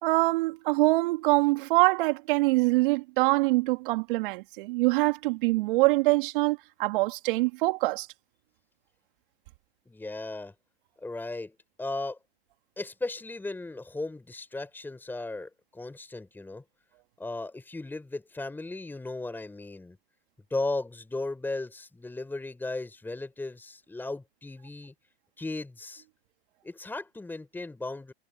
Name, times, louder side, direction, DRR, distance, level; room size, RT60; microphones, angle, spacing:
voice 1, 0.0-8.1, right 22 dB, 55° right, 2.9 m, -24 dB
voice 2, 9.9-10.5 11.0-12.2 12.8-16.6 17.2-20.0 20.5-24.9 25.4-26.0 26.6-28.1, left 2 dB, 5° left, 4.1 m, -36 dB
hypercardioid pair, 125°, 32 cm